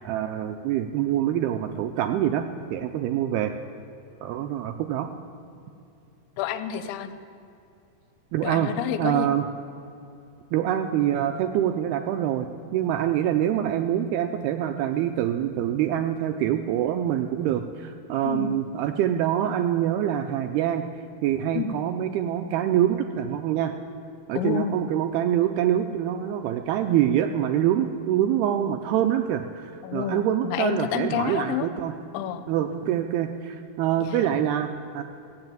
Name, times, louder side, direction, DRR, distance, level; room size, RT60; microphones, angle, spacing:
voice 1, 0.0-2.4 2.7-3.5 4.2-5.1 8.3-8.7 9.0-9.5 10.5-20.9 21.2-23.7 24.3-31.9 32.5-35.0, right 11 dB, 90° right, 7 dB, 2.2 m, -25 dB
voice 2, 6.4-7.1 8.4-9.3 18.2-18.6 21.5-21.8 24.3-24.8 29.8-31.7 32.1-32.5 34.0-34.3, left 9 dB, 85° left, 9 dB, 3.1 m, -29 dB
16.5 x 7.9 x 9.1 m, 2.7 s
omnidirectional pair, 5.0 m